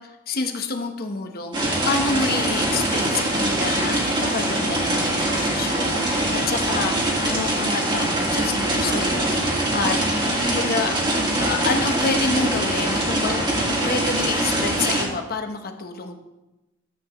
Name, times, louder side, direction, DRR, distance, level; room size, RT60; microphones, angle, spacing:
voice 1, 0.3-10.0 10.4-10.9 11.4-16.2, left 4 dB, 45° left, 5 dB, 1.0 m, -28 dB
sound 1, 1.5-15.1, right 1 dB, 20° right, 1.9 m, -23 dB
13.0 x 8.0 x 3.1 m, 0.98 s
head